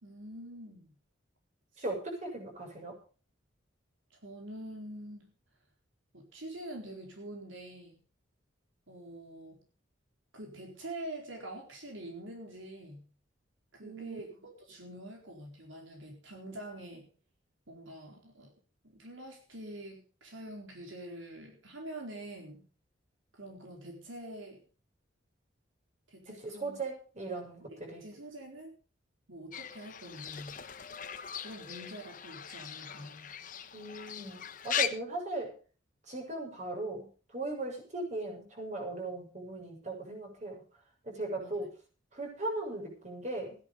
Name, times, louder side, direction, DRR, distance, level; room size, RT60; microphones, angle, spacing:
voice 1, 0.0-0.9 1.7-1.8 4.1-5.3 6.1-8.0 8.9-9.7 10.3-13.1 13.7-17.1 17.7-18.5 18.8-22.7 23.3-24.6 26.1-26.8 27.3-28.7 29.3-30.6 31.4-33.3 41.4-41.7, right 1 dB, 80° right, 1 dB, 4.3 m, -46 dB
voice 2, 1.8-3.0 13.8-14.2 26.3-28.0 33.7-35.5 36.1-37.1 37.3-40.6 41.0-41.7 42.1-43.6, right 2 dB, 35° right, 1 dB, 6.9 m, -38 dB
Fowl / Bird, 29.5-34.9, left 9 dB, 45° left, 1.2 m, -39 dB
16.0 x 11.0 x 5.2 m, 0.38 s
head